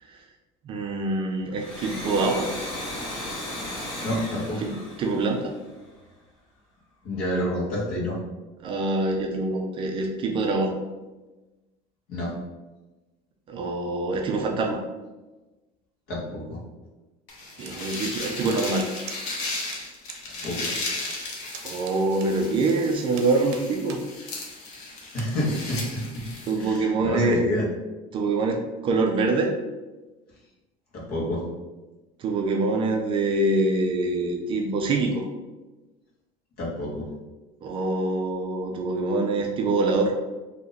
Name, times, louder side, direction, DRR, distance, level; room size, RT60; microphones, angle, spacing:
voice 1, 0.6-2.5 4.6-4.7 5.0-5.5 8.6-10.7 13.5-14.8 17.6-18.9 21.6-24.0 26.4-27.4 28.1-29.5 32.2-35.3 37.6-40.1, right 3 dB, 30° right, 1 dB, 0.3 m, -25 dB
Domestic sounds home sounds, 1.5-6.0, left 1 dB, 35° left, 1.0 m, -35 dB
voice 2, 4.0-4.7 7.0-8.2 12.1-12.3 16.1-16.6 20.4-20.7 25.1-26.2 26.6-27.6 30.9-31.4 36.6-37.1, left 1 dB, 55° left, -5 dB, 1.3 m, -28 dB
sound 1, 17.3-26.8, left 2 dB, 75° left, 0.9 m, -35 dB
sound 2, 17.7-19.4 19.7-19.8 20.1-20.5 20.8-22.7 23.1-24.0 24.5-24.6 25.1-25.3, right 7 dB, 80° right, 0.6 m, -42 dB
2.8 x 2.6 x 4.0 m, 1.1 s
cardioid pair, 165°, 18 cm